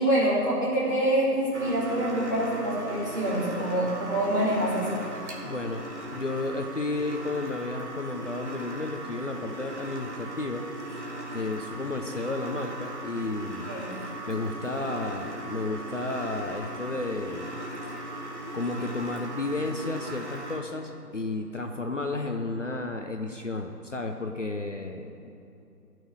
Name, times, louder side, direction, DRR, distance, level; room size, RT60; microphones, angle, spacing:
voice 1, 0.0-4.9 13.7-13.8, right 1 dB, 10° right, -10 dB, 2.3 m, -26 dB
sound 1, 1.5-20.6, right 1 dB, 45° right, 2.2 m, -38 dB
voice 2, 5.4-10.6 11.3-13.7 14.3-17.5 18.1-18.2 18.5-25.3, left 2 dB, 45° left, 4 dB, 1.0 m, -32 dB
15.5 x 6.4 x 9.9 m, 2.8 s
figure-of-eight pair, 175°, 49 cm